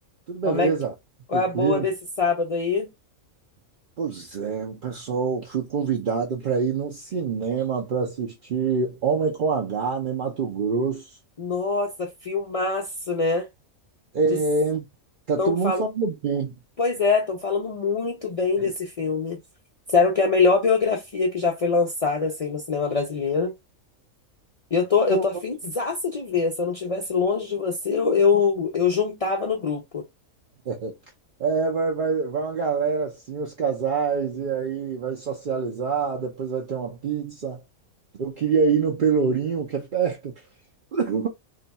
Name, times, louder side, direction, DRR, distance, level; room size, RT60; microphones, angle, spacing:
voice 1, 0.3-0.9 1.3-1.9 4.0-11.1 14.1-14.9 15.3-16.6 18.6-18.7 25.1-25.2 30.7-30.9 31.4-37.6 38.2-40.3 40.9-41.3, right 5 dB, 50° right, 0.6 m, -25 dB
voice 2, 1.3-2.9 11.4-13.5 15.4-15.8 16.8-19.4 19.9-23.5 24.7-30.0, left 4 dB, 70° left, 0.3 m, -23 dB
2.7 x 2.3 x 4.0 m
omnidirectional pair, 1.5 m